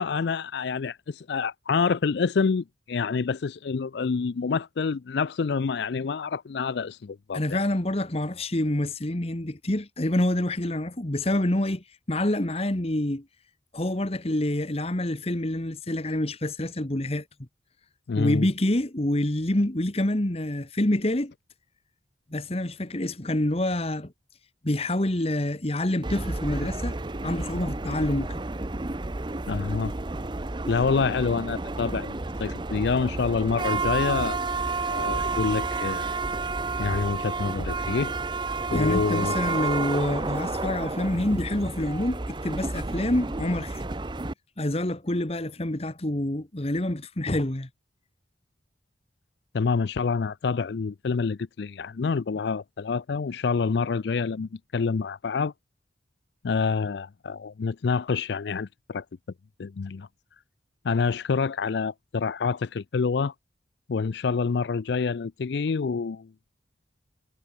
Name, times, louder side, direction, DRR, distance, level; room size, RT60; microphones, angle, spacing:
voice 1, 0.0-7.6 18.1-18.5 29.5-29.9 30.7-34.4 34.9-36.1 36.8-38.1 38.7-39.7 49.5-55.5 56.4-59.0 59.6-60.1 60.8-63.3 63.9-66.3, left 5 dB, 65° left, 0.4 m, -27 dB
voice 2, 7.3-13.2 13.7-17.2 18.1-21.3 22.3-24.1 24.6-27.0 27.2-28.4 38.7-43.8 44.6-47.7, left 1 dB, 35° left, 1.4 m, -27 dB
sound 1, 26.0-44.3, right 3 dB, 25° right, 0.7 m, -30 dB
head